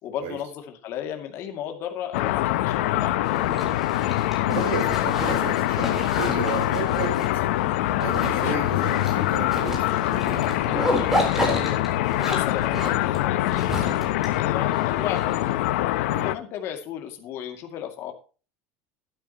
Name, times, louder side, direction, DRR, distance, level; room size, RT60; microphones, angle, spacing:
voice 1, 0.0-3.5 11.4-15.7 16.2-18.1, left 9 dB, 40° left, 4 dB, 2.3 m, -34 dB
sound 1, 2.1-16.4, left 15 dB, 90° left, 0.7 m, -24 dB
Zipper (clothing), 3.2-15.7, equal, 5° right, 3.8 m, -32 dB
voice 2, 4.3-7.6 8.0-10.6 16.0-16.3, right 6 dB, 80° right, 2 dB, 5.7 m, -33 dB
12.5 x 12.5 x 3.0 m, 0.35 s
cardioid pair, 170°, 7 cm